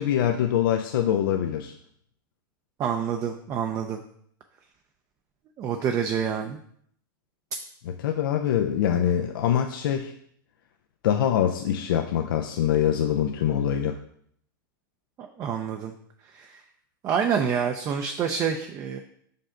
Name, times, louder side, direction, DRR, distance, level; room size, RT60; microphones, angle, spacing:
voice 1, 0.0-1.7 7.9-10.1 11.0-14.0, left 10 dB, 75° left, 4 dB, 0.5 m, -24 dB
voice 2, 2.8-4.0 5.6-6.6 15.2-15.9 16.3-16.6 17.0-19.0, right 7 dB, 30° right, 4 dB, 0.5 m, -27 dB
5.5 x 5.3 x 3.7 m, 0.66 s
supercardioid pair, 130°, 12 cm